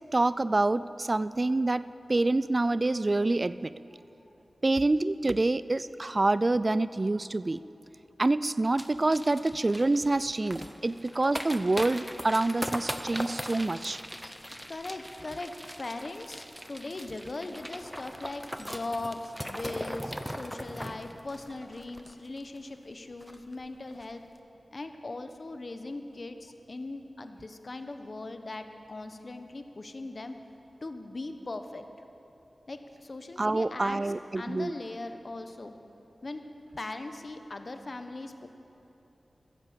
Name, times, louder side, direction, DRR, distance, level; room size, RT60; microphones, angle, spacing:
voice 1, 0.1-3.7 4.6-7.6 8.2-14.0 33.4-34.7, right 2 dB, 40° right, 16 dB, 0.3 m, -27 dB
sound 1, 8.8-22.6 22.9-23.0 23.2-23.5 23.9-24.1, equal, ahead, 0.8 m, -40 dB
voice 2, 14.7-15.5 15.8-24.2 24.7-30.3 30.8-31.8 32.7-34.0 34.3-35.7 36.2-36.4 36.8-38.5, left 2 dB, 50° left, 7 dB, 1.0 m, -39 dB
14.5 x 10.5 x 7.4 m, 3.0 s
cardioid pair, 55°, 0 cm